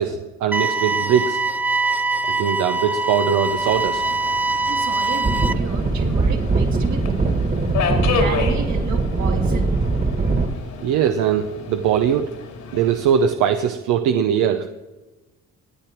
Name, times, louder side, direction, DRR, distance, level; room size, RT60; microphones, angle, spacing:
voice 1, 0.0-1.4 2.3-4.0 10.8-12.3 12.7-14.7, right 8 dB, 90° right, 7 dB, 0.7 m, -21 dB
sound 1, 0.5-5.5, right 3 dB, 5° right, 0.3 m, -23 dB
Subway metro underground, 3.5-13.3, left 5 dB, 75° left, 2.6 m, -31 dB
voice 2, 4.7-7.0 7.9-9.8, right 6 dB, 70° right, 2 dB, 2.4 m, -32 dB
sound 2, 5.2-10.5, right 3 dB, 30° right, 1.7 m, -21 dB
18.5 x 9.3 x 4.5 m, 1.1 s
cardioid pair, 90°, 30 cm